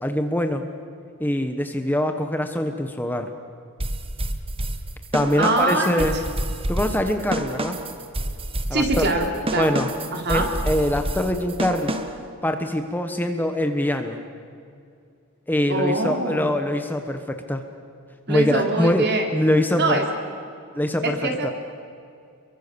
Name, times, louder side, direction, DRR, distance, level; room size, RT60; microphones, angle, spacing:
voice 1, 0.0-0.6 1.2-3.3 5.1-6.1 6.7-7.8 8.7-9.0 9.6-9.9 10.3-12.0 12.4-14.2 15.5-17.6 18.3-19.1 19.3-20.0 20.7-21.2 21.4-21.5, left 1 dB, 10° left, 6 dB, 1.2 m, -23 dB
sound 1, 3.8-12.3, right 1 dB, 25° right, 1.6 m, -29 dB
voice 2, 5.4-5.9 8.7-9.7 10.1-10.5 15.7-16.5 18.3-19.3 19.7-20.0 21.0-21.5, right 2 dB, 50° right, 3 dB, 3.8 m, -23 dB
30.0 x 23.0 x 7.0 m, 2.5 s
head